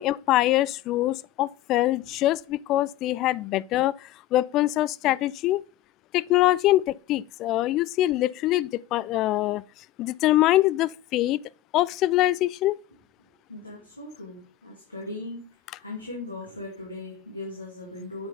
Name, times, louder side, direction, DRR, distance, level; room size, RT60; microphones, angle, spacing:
voice 1, 0.0-5.6 6.1-9.6 10.0-11.4 11.7-12.8, left 15 dB, 35° left, 0.3 m, -24 dB
voice 2, 13.5-15.4 15.8-18.3, left 2 dB, 85° left, 2.0 m, -38 dB
7.8 x 5.7 x 3.9 m
figure-of-eight pair, 90°, 0 cm